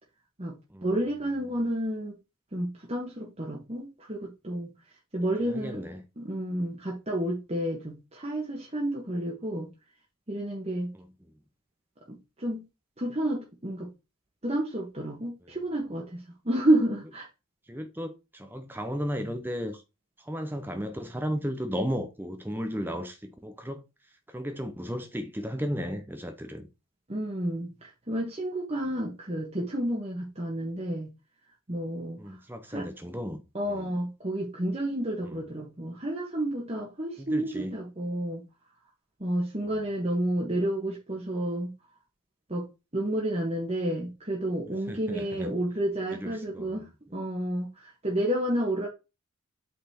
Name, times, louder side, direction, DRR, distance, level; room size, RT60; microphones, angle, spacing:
voice 1, 0.8-2.2 2.5-4.7 5.1-5.8 6.2-9.7 10.3-10.9 12.1-12.6 13.0-13.9 14.4-17.3 27.1-31.1 31.7-32.3 32.7-32.9 33.5-38.4 39.2-41.7 42.5-42.7 42.9-48.9, right 1 dB, 30° right, 1.4 m, -30 dB
voice 2, 5.4-6.0 10.9-11.1 17.7-19.8 20.2-23.8 24.3-26.7 32.2-33.4 33.7-33.9 37.2-37.8 39.7-39.8 44.7-45.5 46.1-46.9, equal, 10° right, 0.7 m, -34 dB
8.3 x 4.3 x 4.3 m
head